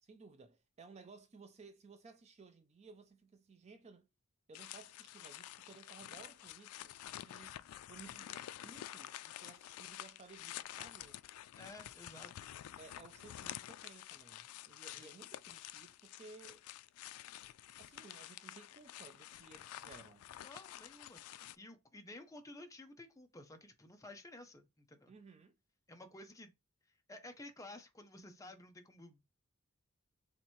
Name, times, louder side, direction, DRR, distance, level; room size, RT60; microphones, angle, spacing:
voice 1, 0.0-4.1 4.5-7.6 7.9-11.2 12.8-16.7 17.8-20.2 25.1-25.6, right 4 dB, 30° right, 0.4 m, -58 dB
sound 1, 4.5-21.6, left 13 dB, 80° left, 0.3 m, -50 dB
voice 2, 11.6-12.5 15.0-15.2 20.4-25.1 25.9-26.5 26.9-29.2, left 2 dB, 15° left, 0.6 m, -53 dB
3.3 x 2.9 x 4.3 m
head